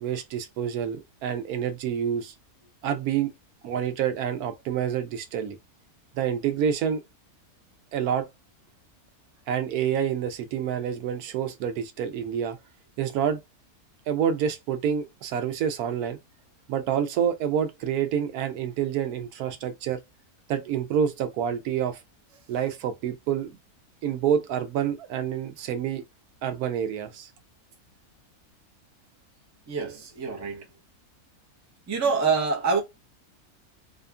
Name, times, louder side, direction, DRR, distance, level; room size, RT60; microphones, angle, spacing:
voice 1, 0.0-2.3 2.8-3.3 3.6-5.6 6.1-7.0 7.9-8.3 9.5-12.6 13.0-13.4 14.1-16.2 16.7-20.0 20.5-22.0 22.5-23.6 24.0-26.0 26.4-27.3, right 8 dB, 90° right, 1.1 m, -27 dB
voice 2, 29.7-30.7 31.9-32.8, right 5 dB, 25° right, 0.3 m, -26 dB
2.8 x 2.5 x 2.2 m
omnidirectional pair, 1.6 m